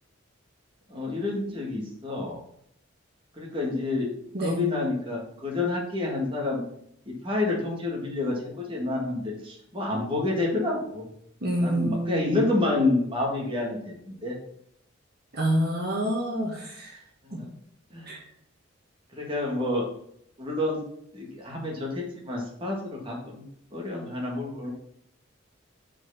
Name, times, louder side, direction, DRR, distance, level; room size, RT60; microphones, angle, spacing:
voice 1, 0.9-2.4 3.4-4.1 4.4-6.6 7.1-11.0 11.6-14.4 17.2-17.5 17.9-18.1 19.1-19.8 20.4-20.8 21.1-23.4 23.7-24.7, left 2 dB, 25° right, -2 dB, 1.8 m, -29 dB
voice 2, 4.3-4.7 11.4-12.3 15.3-17.0 17.3-17.4 18.1-18.2, right 1 dB, 50° right, -2 dB, 1.6 m, -27 dB
6.0 x 4.7 x 5.6 m, 0.70 s
head